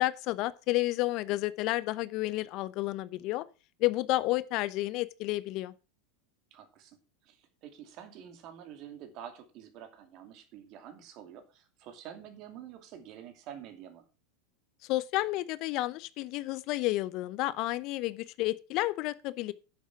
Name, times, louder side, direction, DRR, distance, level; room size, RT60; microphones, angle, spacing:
voice 1, 0.0-3.4 3.8-5.7 14.8-19.5, left 18 dB, 50° left, 0.7 m, -31 dB
voice 2, 6.5-7.0 7.2-14.0, right 9 dB, 50° right, 2.5 m, -48 dB
9.6 x 7.3 x 5.9 m
hypercardioid pair, 90°, 0 cm